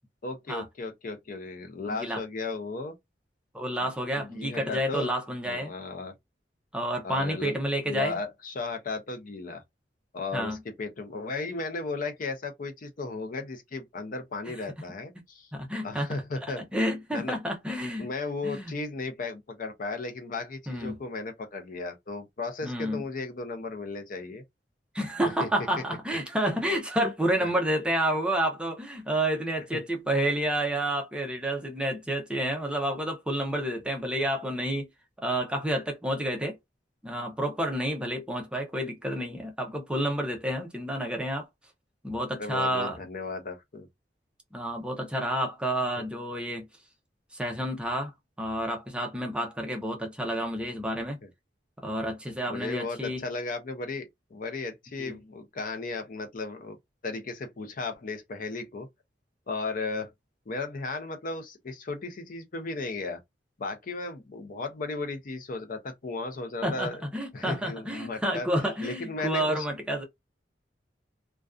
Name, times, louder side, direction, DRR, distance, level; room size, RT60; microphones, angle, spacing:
voice 1, 0.2-2.9 4.1-5.1 5.5-6.1 7.0-7.5 7.9-9.6 10.1-15.5 15.8-16.6 17.1-17.4 18.0-24.4 25.4-25.5 27.4-27.5 29.7-29.8 42.4-43.9 46.0-46.1 52.5-56.8 57.0-58.9 59.5-60.1 60.5-63.2 63.6-67.0 67.3-68.5 68.8-69.7, left 3 dB, 50° left, 0.5 m, -35 dB
voice 2, 1.9-2.2 3.5-5.7 6.7-8.2 10.3-10.6 15.5-16.1 16.7-18.1 18.4-18.7 20.7-21.0 22.6-23.0 24.9-34.9 35.2-36.6 37.0-41.5 42.0-43.0 44.5-46.7 47.3-48.1 48.4-51.2 51.8-53.2 55.0-55.2 66.6-70.0, right 1 dB, 5° right, 0.5 m, -29 dB
2.4 x 2.2 x 2.3 m
head